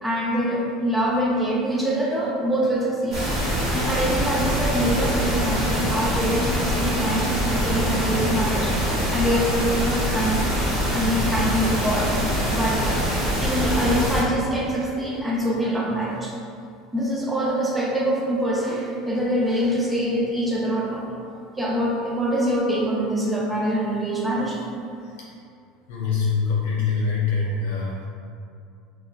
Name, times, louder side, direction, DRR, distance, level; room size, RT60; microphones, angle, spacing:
voice 1, 0.0-3.2 3.7-10.4 10.9-12.1 12.5-13.1 13.4-16.3 16.9-21.1 21.6-24.6, equal, 10° right, -4 dB, 0.4 m, -24 dB
sound 1, 3.1-14.2, equal, 40° right, 1.1 m, -24 dB
voice 2, 25.9-28.0, left 5 dB, 85° left, -5 dB, 0.8 m, -24 dB
2.3 x 2.2 x 3.0 m, 2.4 s
supercardioid pair, 135°, 0 cm